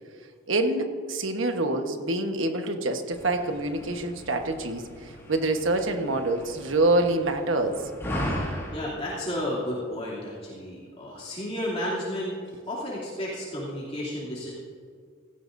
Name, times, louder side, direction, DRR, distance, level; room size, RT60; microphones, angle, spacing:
voice 1, 0.5-7.8, right 2 dB, 80° right, 5 dB, 1.2 m, -26 dB
sound 1, 3.1-8.9, equal, 15° left, 3.1 m, -37 dB
voice 2, 8.7-12.4 12.7-14.5, left 1 dB, 30° left, -7 dB, 2.8 m, -32 dB
17.5 x 16.0 x 2.7 m, 2.1 s
head